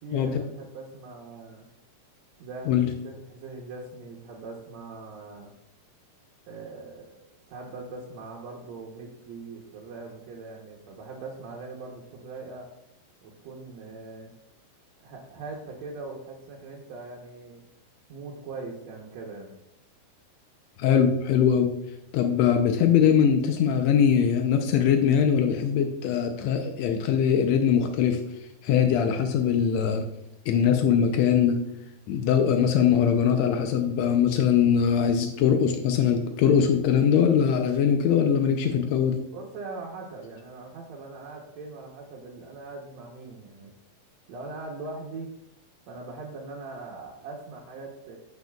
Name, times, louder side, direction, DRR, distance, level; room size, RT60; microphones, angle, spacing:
voice 1, 0.0-1.7 2.4-5.5 6.5-7.2 7.5-12.7 13.2-14.3 15.0-17.6 18.1-19.5 39.3-43.7 44.3-45.3 45.9-48.2, right 3 dB, 70° right, -3 dB, 1.9 m, -41 dB
voice 2, 20.8-21.7 22.1-28.2 28.6-30.0 30.5-31.6 32.1-39.2, left 8 dB, 90° left, 5 dB, 1.5 m, -22 dB
10.0 x 6.5 x 2.3 m, 0.83 s
omnidirectional pair, 3.9 m